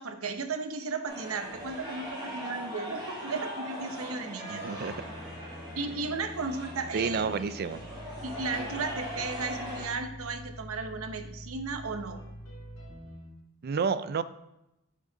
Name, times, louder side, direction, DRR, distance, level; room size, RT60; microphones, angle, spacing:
voice 1, 0.0-4.6 5.8-7.5 8.2-12.2, right 4 dB, 65° right, 7 dB, 0.8 m, -35 dB
sound 1, 1.0-9.8, equal, 20° right, 2.7 m, -40 dB
voice 2, 4.5-4.9 6.9-7.8 13.6-14.2, right 5 dB, 45° right, 13 dB, 0.4 m, -30 dB
sound 2, 4.8-13.3, equal, 75° left, 3.1 m, -46 dB
7.8 x 6.3 x 3.9 m, 0.90 s
head